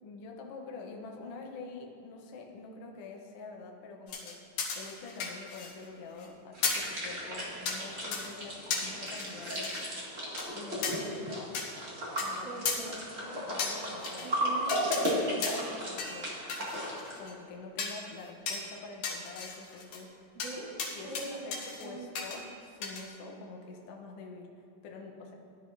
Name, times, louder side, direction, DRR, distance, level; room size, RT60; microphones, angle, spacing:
voice 1, 0.0-9.7 10.5-11.5 12.2-14.4 15.1-20.3 20.9-25.3, left 3 dB, 60° left, 1 dB, 1.7 m, -47 dB
sound 1, 4.1-5.8 6.2-6.3 6.6-6.9 7.7-7.8 8.1-8.3 8.7-9.9 10.4-10.5 10.8-11.0 11.6-11.7 12.2-12.3 12.7-12.8 13.6-14.3 14.7-15.2 15.4-15.7 16.0-16.2 16.5-17.3 17.8-18.0 18.5-18.6 19.0-20.0 20.4-20.5 20.8-21.2 21.5-21.9 22.2-22.4 22.8-23.0, left 5 dB, 90° left, 2.9 m, -35 dB
sound 2, 6.5-17.2, equal, 25° right, 1.8 m, -35 dB
voice 2, 12.4-13.0 14.2-15.8 20.4-20.7 21.0-22.4, right 2 dB, 85° right, -8 dB, 3.3 m, -43 dB
15.0 x 11.0 x 2.7 m, 2.5 s
omnidirectional pair, 3.8 m